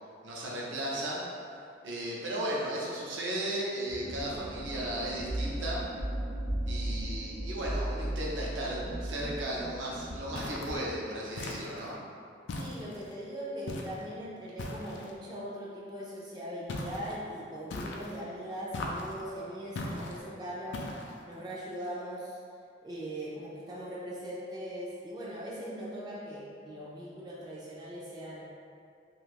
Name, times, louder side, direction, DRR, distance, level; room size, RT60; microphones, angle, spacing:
voice 1, 0.2-1.3 1.8-5.8 6.7-12.0, right 1 dB, 85° right, -5 dB, 0.6 m, -35 dB
sound 1, 3.9-10.9, right 1 dB, 65° right, 1.0 m, -36 dB
sound 2, 10.3-10.8 11.4-11.9 12.5-13.1 13.7-14.1 14.6-15.1 16.7-17.2 17.7-18.2 18.7-19.2 19.7-20.2 20.7-21.2, left 2 dB, 75° left, 0.3 m, -39 dB
voice 2, 12.6-20.9 21.3-22.4 22.8-28.4, equal, 20° right, -7 dB, 0.3 m, -40 dB
2.5 x 2.3 x 3.3 m, 2.4 s
head